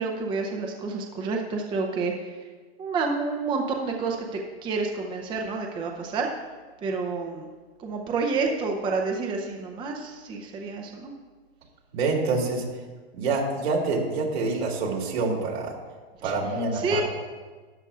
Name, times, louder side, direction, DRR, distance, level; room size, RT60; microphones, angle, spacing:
voice 1, 0.0-2.1 2.8-6.3 6.8-7.5 7.8-11.1 16.2-16.3 16.7-17.0, right 4 dB, 15° right, 2 dB, 0.6 m, -29 dB
voice 2, 11.9-12.6 13.2-15.7 16.2-17.0, right 3 dB, 80° right, -1 dB, 2.7 m, -26 dB
12.5 x 9.5 x 2.4 m, 1.4 s
supercardioid pair, 145°, 31 cm